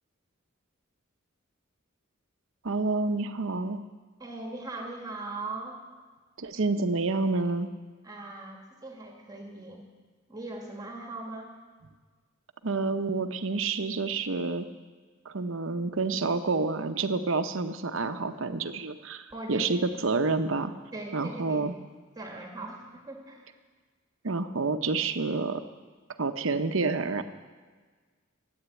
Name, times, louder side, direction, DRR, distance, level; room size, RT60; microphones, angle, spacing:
voice 1, 2.6-3.8 6.4-7.7 12.6-14.7 15.2-20.7 21.1-21.7 24.2-25.6 26.2-27.2, right 3 dB, 70° right, 9 dB, 0.8 m, -28 dB
voice 2, 4.2-5.8 8.0-9.9 10.3-11.5 19.3-19.7 20.9-21.7 22.1-23.5, right 2 dB, 20° right, 1 dB, 1.6 m, -39 dB
13.0 x 8.8 x 8.2 m, 1.5 s
head